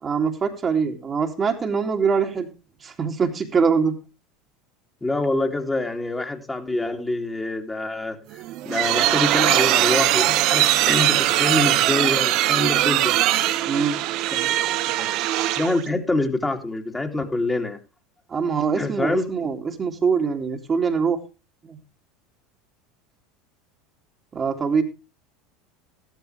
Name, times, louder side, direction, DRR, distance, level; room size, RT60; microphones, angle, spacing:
voice 1, 0.0-2.5 2.8-4.0 13.6-14.0 18.3-21.2 21.6-21.8 24.3-24.8, right 5 dB, 30° right, 3 dB, 2.6 m, -23 dB
voice 2, 5.0-8.2 8.6-13.1 14.3-15.1 15.6-17.8 18.8-19.3, left 2 dB, 10° left, 3 dB, 2.7 m, -26 dB
sound 1, 8.3-15.9, right 14 dB, 55° right, 1.2 m, -21 dB
15.0 x 13.5 x 3.3 m, 0.30 s
figure-of-eight pair, 75°, 0 cm